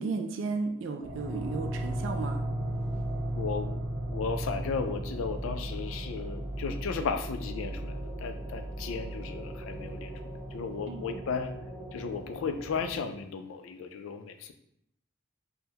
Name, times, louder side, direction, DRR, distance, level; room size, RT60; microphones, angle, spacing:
voice 1, 0.0-2.4 10.9-11.0, right 4 dB, 70° right, 5 dB, 0.3 m, -34 dB
sound 1, 1.0-13.0, right 1 dB, 5° right, 1.2 m, -36 dB
voice 2, 3.3-3.8 4.1-11.5 11.9-14.5, left 5 dB, 80° left, 8 dB, 0.3 m, -35 dB
3.5 x 2.2 x 2.8 m, 0.75 s
head